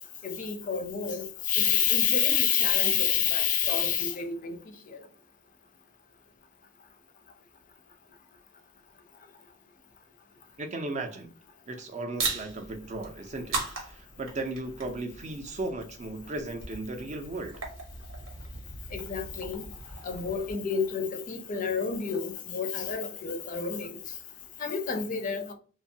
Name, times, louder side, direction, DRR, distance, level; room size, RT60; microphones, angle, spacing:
voice 1, 0.2-4.6 18.9-19.6 20.0-23.9 24.6-25.5, left 7 dB, 40° left, 0.4 m, -28 dB
voice 2, 10.6-11.3 11.7-13.6 13.9-17.6, right 2 dB, 35° right, 0.4 m, -36 dB
sound 1, 12.2-20.5, right 3 dB, 80° right, 0.9 m, -39 dB
2.8 x 2.2 x 2.6 m
head